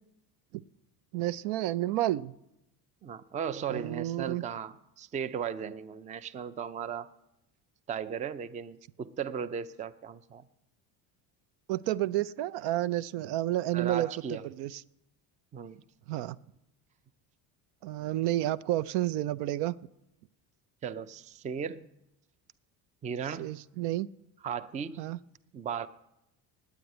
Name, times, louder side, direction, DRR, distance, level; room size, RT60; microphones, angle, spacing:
voice 1, 1.1-2.3 3.7-4.4 11.7-14.8 16.1-16.4 17.8-19.7 23.4-24.1 25.0-25.2, right 14 dB, 80° right, 16 dB, 0.6 m, -30 dB
voice 2, 3.0-7.1 7.9-10.4 13.7-14.4 15.5-15.8 20.8-21.9 23.0-23.6 24.4-25.1 25.5-25.9, right 7 dB, 20° right, 12 dB, 0.4 m, -36 dB
9.4 x 8.9 x 9.6 m, 0.85 s
cardioid pair, 140°, 41 cm